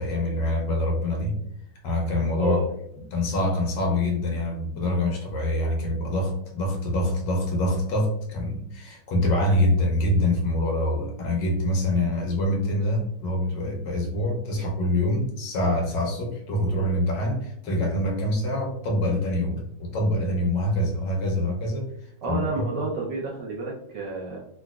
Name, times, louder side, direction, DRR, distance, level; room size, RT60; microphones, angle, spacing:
voice 1, 0.0-1.4 1.8-2.6 3.1-22.8, left 1 dB, 70° left, 0 dB, 1.2 m, -25 dB
voice 2, 22.2-24.4, right 3 dB, 70° right, -3 dB, 1.1 m, -30 dB
3.9 x 2.3 x 2.2 m, 0.72 s
omnidirectional pair, 2.3 m